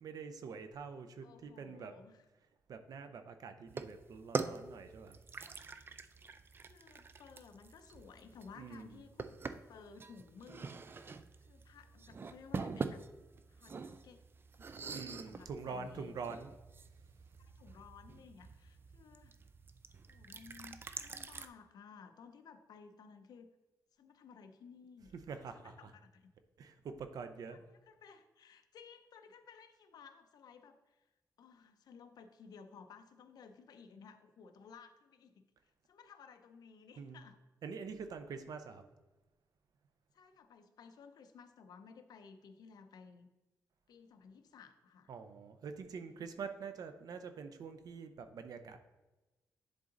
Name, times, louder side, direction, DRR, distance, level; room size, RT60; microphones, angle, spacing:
voice 1, 0.0-1.9 2.7-5.2 8.6-9.0 14.9-16.5 25.3-25.9 26.6-27.6 37.0-37.2 37.6-38.8 45.1-48.8, right 5 dB, 70° right, 8 dB, 0.7 m, -45 dB
voice 2, 1.2-2.3 6.7-9.3 9.7-11.1 11.4-13.1 13.5-14.2 15.0-16.2 17.4-19.4 20.1-23.5 24.0-25.2 25.5-26.3 27.5-27.6 27.9-31.1 31.4-37.4 40.1-43.3 43.9-45.1 46.1-46.3, left 5 dB, 80° left, 8 dB, 0.6 m, -57 dB
sound 1, 3.7-21.5, right 4 dB, 35° right, 0.4 m, -45 dB
10.5 x 3.8 x 3.9 m, 1.1 s
wide cardioid pair, 120°, 7 cm